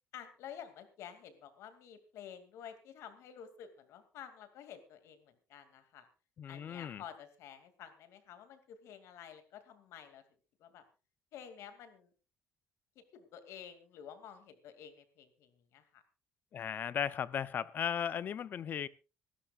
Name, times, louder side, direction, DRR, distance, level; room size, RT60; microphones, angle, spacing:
voice 1, 0.1-6.1 6.5-10.2 10.6-10.8 11.3-12.1 13.0-16.0, left 9 dB, 70° left, 2.5 m, -51 dB
voice 2, 6.4-7.0 16.5-18.9, left 8 dB, 40° left, 0.6 m, -36 dB
26.5 x 12.5 x 2.4 m
cardioid pair, 165°, 5 cm